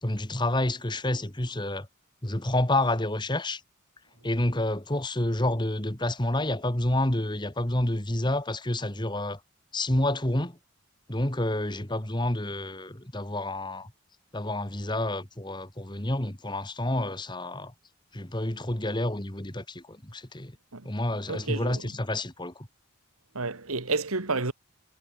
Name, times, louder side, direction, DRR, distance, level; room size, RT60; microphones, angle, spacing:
voice 1, 0.0-1.9 2.2-3.6 4.2-9.4 9.7-10.6 11.1-13.9 14.3-17.7 18.1-20.6 20.8-22.7, left 1 dB, 20° left, 2.0 m, -29 dB
voice 2, 21.3-21.8 23.3-24.5, right 3 dB, 85° right, 2.0 m, -30 dB
head